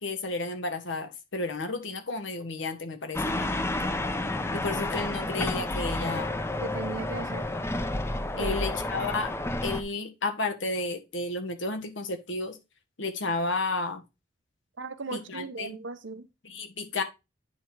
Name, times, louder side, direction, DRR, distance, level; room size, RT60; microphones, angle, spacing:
voice 1, 0.0-3.5 4.5-6.3 8.4-9.3 9.6-12.6 13.0-14.0 15.1-15.8 16.4-17.0, left 3 dB, 85° left, 1.4 m, -32 dB
sound 1, 3.1-9.8, left 2 dB, 15° left, 0.5 m, -30 dB
voice 2, 6.6-7.5 8.4-9.1 14.8-16.3, right 3 dB, 80° right, 0.9 m, -38 dB
9.1 x 3.5 x 4.6 m
head